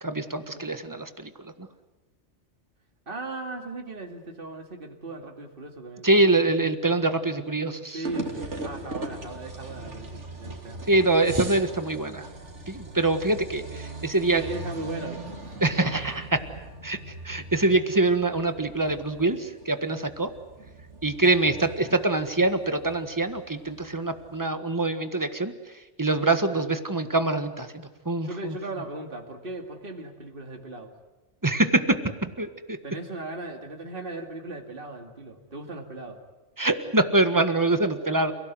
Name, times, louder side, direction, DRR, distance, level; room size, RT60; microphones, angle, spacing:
voice 1, 0.0-1.3 6.0-8.0 10.9-12.3 12.7-14.4 15.6-16.4 16.8-17.0 17.2-20.3 21.0-25.5 26.0-28.5 31.4-32.0 32.2-32.8 36.6-38.3, right 2 dB, 15° right, 9 dB, 1.6 m, -24 dB
voice 2, 3.1-6.5 7.9-11.0 14.1-15.5 28.2-30.9 32.8-36.2, right 2 dB, 50° right, 4 dB, 2.6 m, -38 dB
sound 1, 8.0-24.4, right 2 dB, 85° right, 3.1 m, -40 dB
30.0 x 17.5 x 9.6 m, 1.1 s
omnidirectional pair, 1.2 m